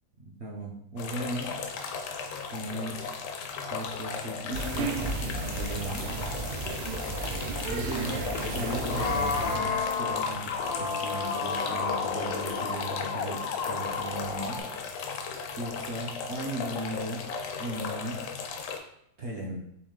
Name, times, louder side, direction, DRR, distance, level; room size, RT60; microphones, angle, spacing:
voice 1, 0.3-1.6 2.5-3.0 3.7-6.1 7.7-8.2 8.5-14.7 15.6-17.3 17.6-18.3 19.2-19.6, right 2 dB, 65° right, -3 dB, 0.7 m, -37 dB
sound 1, 1.0-18.8, left 5 dB, 75° left, 1.1 m, -36 dB
sound 2, 4.5-9.6, right 3 dB, 90° right, 1.4 m, -33 dB
sound 3, 8.3-14.6, left 5 dB, 90° left, 1.3 m, -31 dB
4.5 x 3.0 x 3.7 m, 0.76 s
omnidirectional pair, 2.0 m